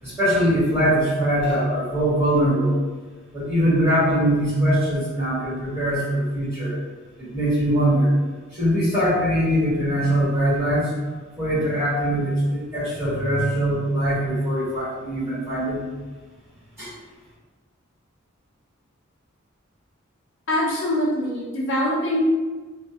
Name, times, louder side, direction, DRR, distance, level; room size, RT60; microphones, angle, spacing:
voice 1, 0.0-2.8 3.3-6.7 7.2-8.1 8.5-10.9 11.4-15.8 16.8-16.9, equal, 15° right, -12 dB, 1.4 m, -22 dB
voice 2, 20.5-22.3, left 1 dB, 60° left, -5 dB, 0.6 m, -23 dB
2.5 x 2.1 x 2.4 m, 1.3 s
head